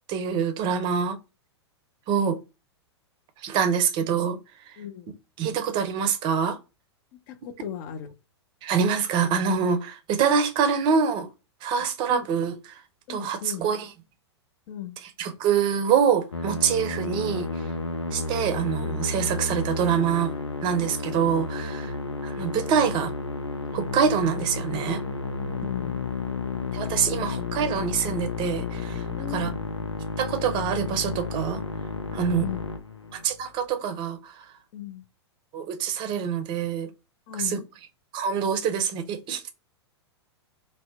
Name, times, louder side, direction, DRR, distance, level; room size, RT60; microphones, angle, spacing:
voice 1, 0.1-1.2 2.1-2.4 3.4-4.4 5.4-6.6 8.6-11.3 11.6-12.5 13.1-13.9 15.2-17.5 18.1-20.3 20.6-21.9 22.2-23.1 23.7-25.0 26.7-29.0 29.3-29.5 30.2-31.6 32.1-32.4 33.1-34.3 35.5-36.9 37.4-37.6 38.1-39.5, right 7 dB, 35° right, 0.5 m, -25 dB
voice 2, 4.8-5.2 7.3-8.1 12.1-12.3 13.1-13.6 14.7-15.0 25.3-26.1 29.2-29.5 32.1-32.7 34.7-35.0 37.3-37.7, left 10 dB, 45° left, 0.5 m, -37 dB
Musical instrument, 16.3-33.4, left 3 dB, 90° left, 0.5 m, -32 dB
2.7 x 2.1 x 3.4 m
figure-of-eight pair, 100°, 14 cm